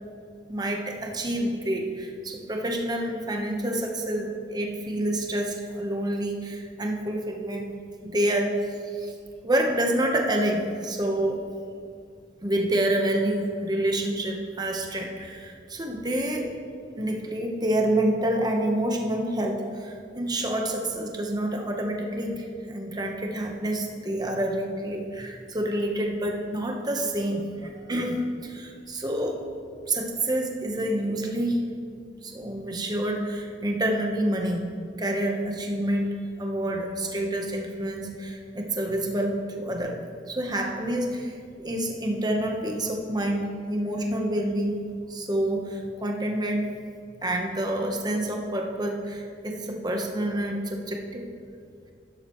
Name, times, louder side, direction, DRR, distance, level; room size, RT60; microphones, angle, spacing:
voice 1, 0.5-7.6 8.0-8.5 8.9-9.1 9.4-11.4 12.4-16.5 17.0-29.4 29.9-31.6 32.2-34.6 35.0-40.0 40.3-44.8 45.1-46.7 47.2-51.2, right 1 dB, 25° right, 1 dB, 1.0 m, -28 dB
11.5 x 11.5 x 3.1 m, 2.3 s
head